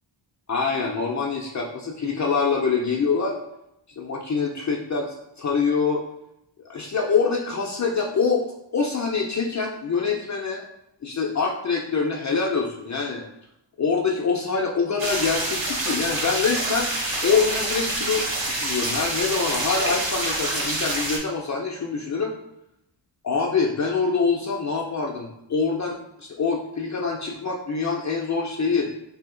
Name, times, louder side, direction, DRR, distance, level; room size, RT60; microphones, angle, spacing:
voice 1, 0.5-3.4 4.0-6.0 6.6-8.5 8.7-10.6 11.0-13.2 13.8-16.9 17.2-22.3 23.2-28.9, left 5 dB, 40° left, 0 dB, 0.4 m, -25 dB
sound 1, 15.0-21.2, right 2 dB, 70° right, 1.0 m, -27 dB
2.8 x 2.7 x 3.7 m, 0.82 s
wide cardioid pair, 100°, 46 cm